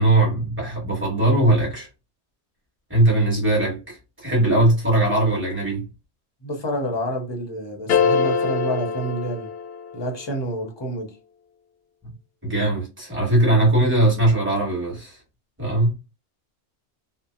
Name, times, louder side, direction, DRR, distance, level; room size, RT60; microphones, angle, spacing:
voice 1, 0.0-1.9 2.9-5.9 12.4-15.2 15.6-15.9, right 1 dB, 10° right, 1.3 m, -20 dB
voice 2, 6.4-9.5 9.9-11.1, right 1 dB, 30° left, 0.5 m, -28 dB
sound 1, 7.9-10.2, left 6 dB, 65° left, 0.8 m, -23 dB
2.6 x 2.1 x 2.4 m
omnidirectional pair, 1.2 m